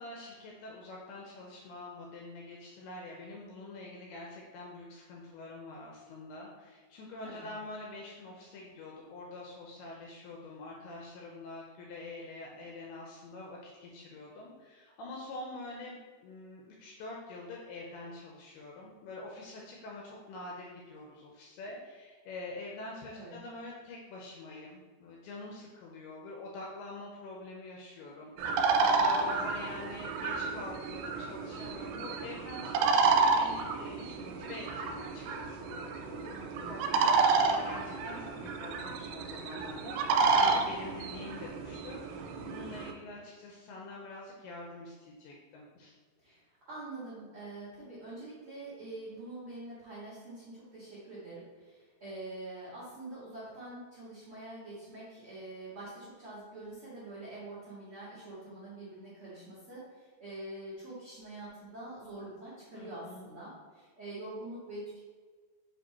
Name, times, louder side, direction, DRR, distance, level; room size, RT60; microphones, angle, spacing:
voice 1, 0.0-36.3 36.6-46.0 62.7-63.3, left 2 dB, 85° left, -2 dB, 2.4 m, -45 dB
sound 1, 28.4-42.9, right 4 dB, 85° right, 2.9 m, -30 dB
voice 2, 36.3-36.8 46.2-46.4 46.7-65.0, right 2 dB, 70° right, -9 dB, 1.3 m, -45 dB
7.7 x 3.0 x 4.1 m, 1.5 s
omnidirectional pair, 5.3 m